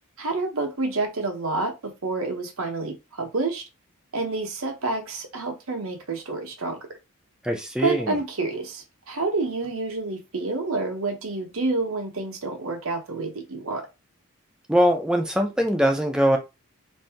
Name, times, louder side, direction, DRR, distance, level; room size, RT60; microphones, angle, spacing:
voice 1, 0.2-3.6 4.1-6.8 7.8-13.8, right 3 dB, 70° right, 0.9 m, -28 dB
voice 2, 7.4-8.2 14.7-16.4, equal, 5° right, 0.4 m, -22 dB
2.6 x 2.6 x 3.4 m
head